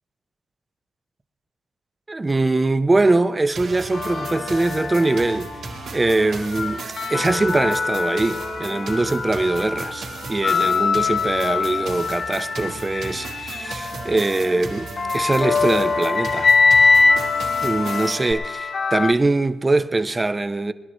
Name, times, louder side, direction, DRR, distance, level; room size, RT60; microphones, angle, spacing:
voice 1, 2.1-5.5 5.9-6.8 7.1-16.5 17.6-20.7, right 2 dB, 20° right, 0.6 m, -22 dB
sound 1, 3.5-18.3, right 4 dB, 75° right, 2.1 m, -36 dB
sound 2, 3.9-5.8 6.3-19.1, left 4 dB, 50° left, 0.6 m, -23 dB
21.0 x 11.0 x 4.3 m
cardioid pair, 105°, 0 cm